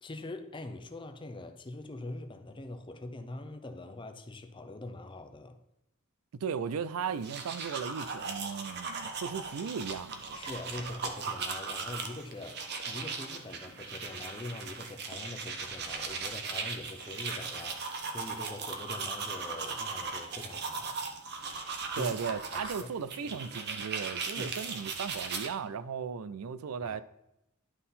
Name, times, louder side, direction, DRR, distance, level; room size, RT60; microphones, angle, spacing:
voice 1, 0.0-5.6 10.3-21.0 22.0-22.1 22.5-22.9 23.2-23.4 24.4-24.6 26.8-27.0, left 2 dB, 25° left, 0.6 m, -43 dB
voice 2, 6.3-10.4 21.9-27.0, right 6 dB, 90° right, 0.4 m, -36 dB
sound 1, 7.1-25.5, right 4 dB, 50° right, 0.8 m, -38 dB
11.0 x 3.8 x 4.1 m
head